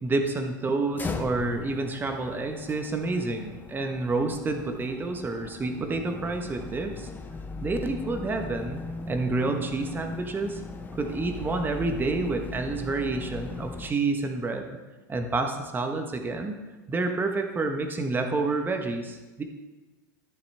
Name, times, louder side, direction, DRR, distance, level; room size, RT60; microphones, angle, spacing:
voice 1, 0.0-7.1 7.6-8.8 9.1-10.6 10.9-14.8 15.1-16.6 16.9-19.4, right 3 dB, 20° right, 5 dB, 1.3 m, -29 dB
sound 1, 0.9-13.9, left 4 dB, 20° left, 0.8 m, -39 dB
12.5 x 7.2 x 3.6 m, 1.2 s
hypercardioid pair, 90°, 10 cm